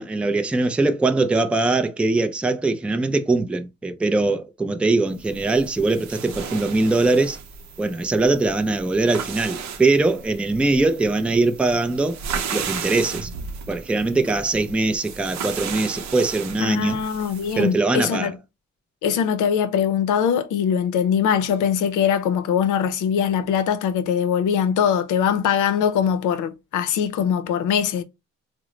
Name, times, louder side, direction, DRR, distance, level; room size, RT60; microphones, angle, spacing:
voice 1, 0.0-7.4 7.8-12.2 12.5-13.3 13.7-17.0 17.6-18.3, right 3 dB, 5° right, 0.3 m, -21 dB
sound 1, 5.2-17.7, right 6 dB, 65° right, 0.6 m, -35 dB
voice 2, 16.6-18.4 19.0-28.0, left 8 dB, 80° left, 0.6 m, -22 dB
3.7 x 2.0 x 3.0 m
cardioid pair, 90°, 30 cm